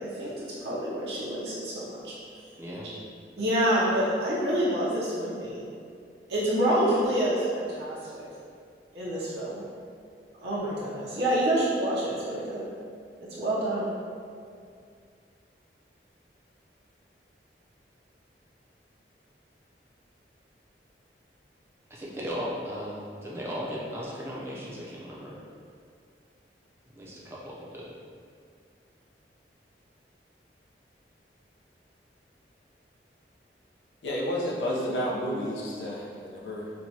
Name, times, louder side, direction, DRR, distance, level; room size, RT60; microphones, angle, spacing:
voice 1, 0.0-2.1 3.4-5.6 6.3-8.2 8.9-9.6 10.4-12.6 13.2-13.9, right 1 dB, 70° right, -8 dB, 0.6 m, -27 dB
voice 2, 2.6-2.9 21.9-25.4 27.0-27.9, equal, 15° right, -6 dB, 0.5 m, -36 dB
voice 3, 34.0-36.7, equal, 90° left, -4 dB, 0.7 m, -31 dB
4.4 x 2.2 x 2.7 m, 2.3 s
head